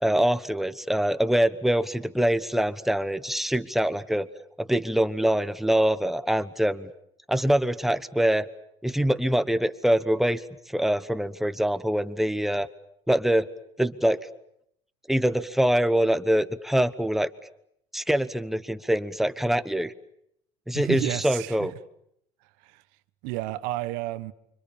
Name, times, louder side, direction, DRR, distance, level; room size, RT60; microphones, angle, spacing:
voice 1, 0.0-4.3 4.6-6.9 7.3-8.5 8.8-10.4 10.7-12.7 13.1-13.5 13.8-14.2 15.1-17.3 17.9-19.9 20.7-21.7, right 1 dB, ahead, 1.1 m, -24 dB
voice 2, 20.7-21.7 22.6-22.8 23.2-24.3, right 17 dB, 80° right, 1.3 m, -31 dB
29.5 x 25.0 x 7.2 m
cardioid pair, 130°, 14 cm